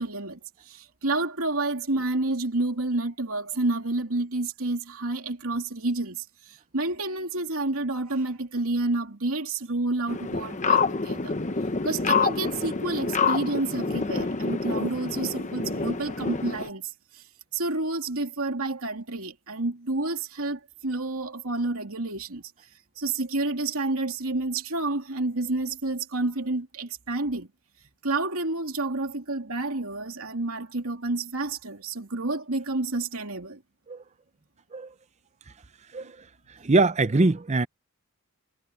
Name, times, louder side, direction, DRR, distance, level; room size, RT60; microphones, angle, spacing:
voice 1, 0.0-11.3 11.8-17.2 17.5-22.5 23.0-27.5 28.0-33.6 36.0-36.1, right 2 dB, 75° right, 2.9 m, -29 dB
sound 1, 10.1-16.7, left 4 dB, 35° left, 0.9 m, -27 dB
voice 2, 36.6-37.7, right 3 dB, 30° right, 0.6 m, -22 dB
head